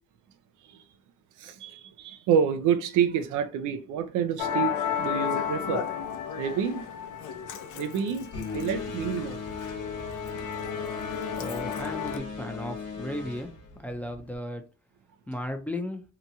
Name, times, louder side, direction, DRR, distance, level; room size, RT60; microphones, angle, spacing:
voice 1, 1.4-5.8 6.4-6.9 7.7-8.3 8.5-9.4, right 7 dB, 80° right, 0.5 m, -28 dB
Musical instrument, 4.4-12.2, left 8 dB, 75° left, 0.5 m, -33 dB
sound 1, 8.3-14.4, left 5 dB, 55° left, 1.0 m, -37 dB
voice 2, 11.4-13.5 13.8-14.6 15.3-16.0, left 1 dB, 5° left, 0.5 m, -35 dB
2.8 x 2.2 x 2.6 m
cardioid pair, 90°, 30 cm